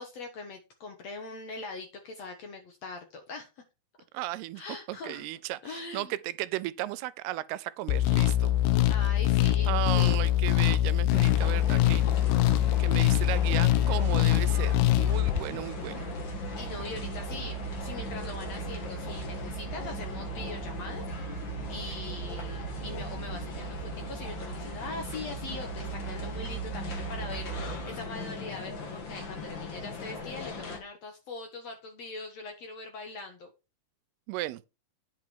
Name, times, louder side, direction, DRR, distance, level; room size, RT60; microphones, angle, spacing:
voice 1, 0.0-3.5 4.6-5.3 5.6-6.1 8.9-10.2 16.6-21.0 21.7-33.5, left 3 dB, 60° left, 1.8 m, -42 dB
voice 2, 4.1-4.6 4.9-8.5 9.7-12.0 12.8-16.1 34.3-34.6, right 16 dB, 90° right, 2.6 m, -35 dB
sound 1, 7.9-15.4, left 13 dB, 85° left, 1.9 m, -23 dB
sound 2, 11.1-30.8, left 4 dB, 45° left, 1.7 m, -39 dB
sound 3, 13.6-28.1, right 11 dB, 65° right, 2.3 m, -40 dB
9.6 x 6.0 x 4.5 m
omnidirectional pair, 4.5 m